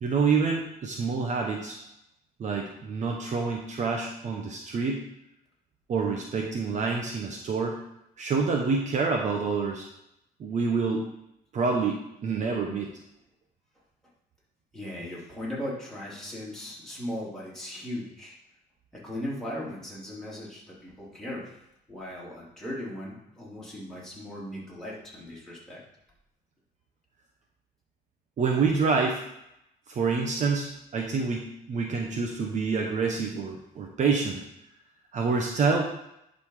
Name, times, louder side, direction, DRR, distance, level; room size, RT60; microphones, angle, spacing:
voice 1, 0.0-1.8 2.4-5.0 5.9-7.8 8.2-9.9 10.4-11.0 11.5-12.9 28.4-29.2 29.9-34.4 35.1-35.9, right 4 dB, 45° right, 1 dB, 1.1 m, -27 dB
voice 2, 14.7-18.4 18.9-21.6 21.9-25.8, left 1 dB, 5° left, -7 dB, 3.6 m, -38 dB
10.5 x 4.3 x 5.0 m, 0.82 s
cardioid pair, 110°, 17 cm